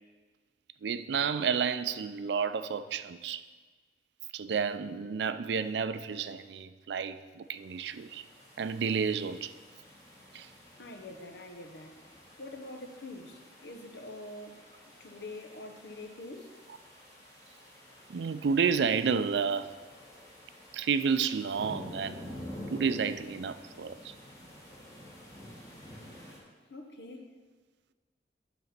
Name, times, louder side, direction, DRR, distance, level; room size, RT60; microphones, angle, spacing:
voice 1, 0.8-3.4 4.3-8.2 8.6-9.5 10.3-10.5 18.1-19.7 20.7-22.3 22.7-24.1, right 6 dB, 75° right, 0.4 m, -31 dB
sound 1, 7.5-26.4, left 1 dB, 20° left, 1.7 m, -50 dB
voice 2, 10.8-12.0 12.4-14.6 15.0-16.5 26.7-27.3, left 2 dB, 75° left, 1.0 m, -45 dB
10.5 x 4.0 x 5.8 m
head